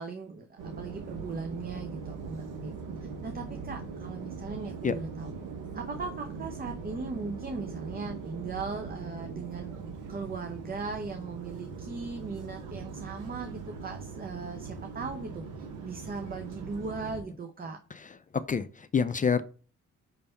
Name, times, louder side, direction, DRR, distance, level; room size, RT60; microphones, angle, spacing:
voice 1, 0.0-2.7 3.0-5.3 5.7-9.7 10.1-15.5 15.8-17.8, right 4 dB, 30° right, 6 dB, 0.8 m, -38 dB
sound 1, 0.6-17.2, right 5 dB, 85° right, 1.3 m, -41 dB
voice 2, 18.3-19.4, left 6 dB, 25° left, 12 dB, 0.5 m, -27 dB
5.6 x 3.4 x 5.4 m, 0.37 s
cardioid pair, 90°, 30 cm